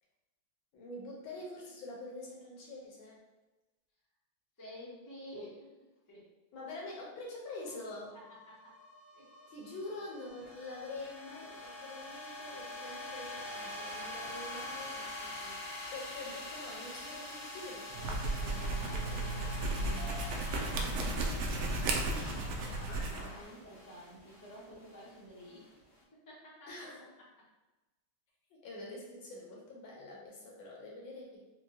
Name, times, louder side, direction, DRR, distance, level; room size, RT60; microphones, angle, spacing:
voice 1, 0.7-3.2 6.5-8.1 9.5-15.1 15.9-20.1 22.0-22.4 26.7-27.0 28.5-31.4, left 2 dB, 70° left, -3 dB, 1.6 m, -46 dB
voice 2, 4.6-5.7 6.1-6.2 8.5-8.7 9.1-9.5 14.7-15.6 21.4-22.2 22.8-25.8 26.3-26.9 27.4-27.5, equal, 20° left, -7 dB, 0.5 m, -51 dB
sound 1, 7.6-25.9, left 1 dB, 55° left, 0.9 m, -46 dB
sound 2, 17.9-23.3, right 2 dB, 75° right, 0.9 m, -34 dB
sound 3, 18.4-23.4, left 2 dB, 90° left, 1.6 m, -48 dB
4.6 x 2.2 x 2.8 m, 1.1 s
omnidirectional pair, 2.3 m